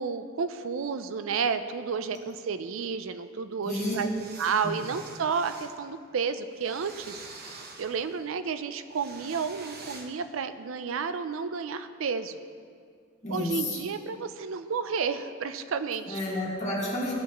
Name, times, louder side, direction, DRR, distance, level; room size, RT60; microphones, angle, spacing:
voice 1, 0.0-4.1 4.4-12.4 13.3-16.2, right 5 dB, 70° right, 11 dB, 0.5 m, -31 dB
voice 2, 3.6-3.9 4.6-4.8 13.2-13.8 16.1-17.1, left 1 dB, 35° left, -5 dB, 2.0 m, -31 dB
sound 1, 3.7-5.7 6.5-8.2 8.9-10.1, right 3 dB, 50° right, 0.9 m, -46 dB
14.0 x 5.9 x 3.0 m, 2.2 s
head